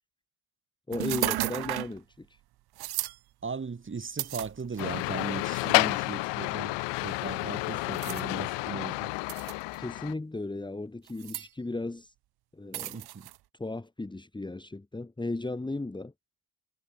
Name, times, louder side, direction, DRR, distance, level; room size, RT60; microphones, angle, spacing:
voice 1, 0.9-2.4 9.8-12.1 12.5-13.0 13.6-16.1, left 2 dB, 10° left, 2.3 m, -36 dB
sound 1, 0.9-2.0 2.8-3.2 4.2-5.0 5.8-5.9 7.9-8.2 9.3-9.8 11.1-11.5 12.7-13.4, right 16 dB, 60° right, 1.2 m, -33 dB
voice 2, 3.4-9.1 12.9-13.3, right 5 dB, 25° right, 5.4 m, -38 dB
sound 2, 4.8-10.1, left 23 dB, 75° left, 1.4 m, -30 dB
supercardioid pair, 85°, 43 cm